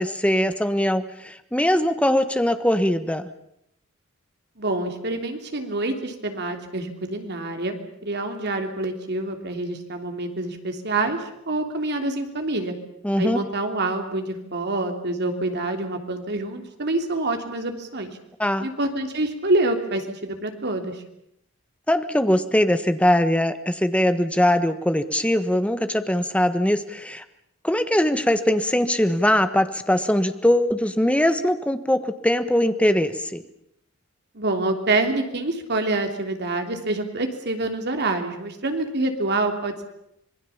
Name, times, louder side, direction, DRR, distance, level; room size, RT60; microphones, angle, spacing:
voice 1, 0.0-3.3 13.0-13.4 18.4-18.7 21.9-27.2 27.6-33.4, left 1 dB, 5° left, 10 dB, 1.3 m, -21 dB
voice 2, 4.6-12.7 13.2-18.1 18.6-21.0 34.3-39.8, right 2 dB, 50° right, 5 dB, 3.1 m, -26 dB
26.0 x 20.5 x 7.2 m, 0.78 s
head